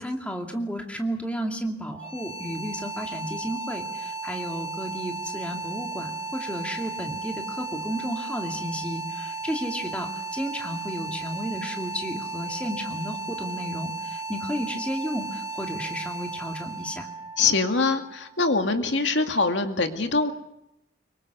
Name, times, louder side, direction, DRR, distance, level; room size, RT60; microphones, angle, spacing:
voice 1, 0.0-17.1, equal, 5° left, 2 dB, 2.5 m, -33 dB
sound 1, 1.9-18.8, right 4 dB, 35° left, 6.0 m, -35 dB
voice 2, 17.4-20.3, left 3 dB, 85° left, 6 dB, 2.2 m, -23 dB
25.5 x 23.5 x 6.9 m, 0.85 s
head